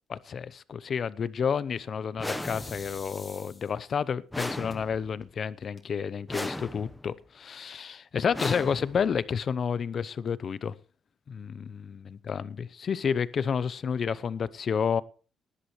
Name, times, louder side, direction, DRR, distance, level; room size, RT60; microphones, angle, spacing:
voice 1, 0.1-10.7 11.3-12.4 12.7-15.0, left 6 dB, 50° left, 0.7 m, -30 dB
sound 1, 2.2-3.1 4.3-5.2 6.3-7.1 8.3-9.2, left 1 dB, 5° left, 1.0 m, -36 dB
sound 2, 2.3-3.9 4.7-4.8 5.2-5.3 5.6-6.2, left 3 dB, 25° left, 2.2 m, -47 dB
18.5 x 11.5 x 3.1 m
cardioid pair, 90°, 0 cm